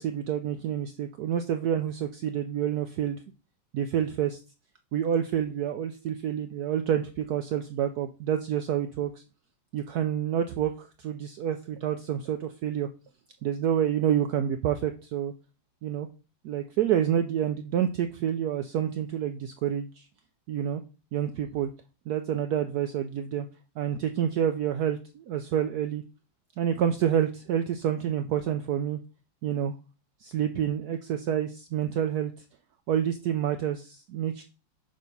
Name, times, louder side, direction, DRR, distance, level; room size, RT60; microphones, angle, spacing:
voice 1, 0.0-3.2 3.7-4.4 4.9-9.1 9.7-12.9 13.4-15.3 15.8-16.1 16.4-20.0 20.5-20.8 21.1-21.7 22.1-23.5 23.8-26.0 26.6-29.0 29.4-29.7 30.2-32.3 32.9-34.4, right 9 dB, 80° right, 7 dB, 0.8 m, -28 dB
6.4 x 3.3 x 5.3 m, 0.33 s
omnidirectional pair, 2.2 m